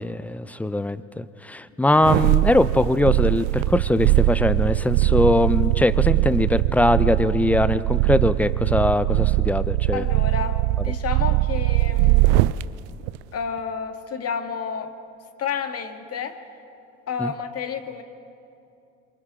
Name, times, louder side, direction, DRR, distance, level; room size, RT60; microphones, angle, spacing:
voice 1, 0.0-10.0 17.2-17.3, left 1 dB, 5° left, 15 dB, 0.7 m, -21 dB
sound 1, 1.9-12.6 13.1-13.2, right 18 dB, 65° right, 0.6 m, -21 dB
voice 2, 9.9-10.6 10.8-12.5 13.3-14.9 15.4-16.4 17.1-18.0, left 6 dB, 40° left, 6 dB, 1.9 m, -30 dB
27.5 x 25.0 x 3.8 m, 2.6 s
hypercardioid pair, 70°, 37 cm